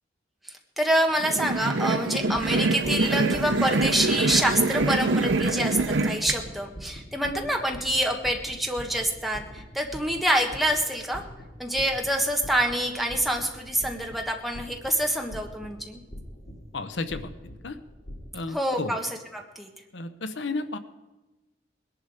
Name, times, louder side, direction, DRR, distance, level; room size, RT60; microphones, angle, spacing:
voice 1, 0.4-11.2 11.6-16.0 18.5-19.7, right 1 dB, ahead, 2 dB, 1.4 m, -26 dB
sound 1, 1.2-6.4, right 3 dB, 75° right, 0.7 m, -25 dB
sound 2, 2.1-18.3, equal, 55° left, 2.9 m, -43 dB
voice 2, 16.7-17.3 17.6-17.8 18.3-19.0 19.9-20.8, left 3 dB, 75° left, 11 dB, 0.8 m, -32 dB
20.5 x 11.0 x 4.9 m, 1.1 s
head